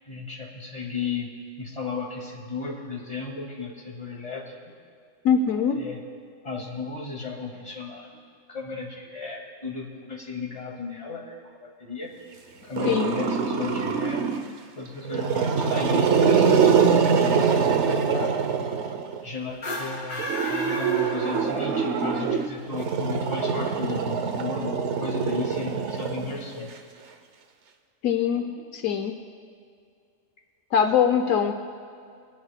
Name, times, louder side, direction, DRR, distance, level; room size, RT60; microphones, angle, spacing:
voice 1, 0.1-1.3 1.6-4.7 5.7-6.0 6.4-8.1 8.5-12.1 12.6-14.3 14.8-18.3 19.2-26.7 28.6-28.7, left 4 dB, 25° left, -3 dB, 2.1 m, -35 dB
voice 2, 5.2-5.8 12.8-13.2 28.0-28.5 28.7-29.2 30.7-31.5, left 7 dB, 80° left, 5 dB, 1.1 m, -22 dB
Growling, 12.8-14.5 15.0-19.2 20.2-26.7, right 6 dB, 60° right, 1.0 m, -24 dB
sound 1, 19.5-21.8, left 1 dB, 55° left, 1.8 m, -34 dB
25.0 x 10.5 x 2.2 m, 2.3 s
omnidirectional pair, 1.4 m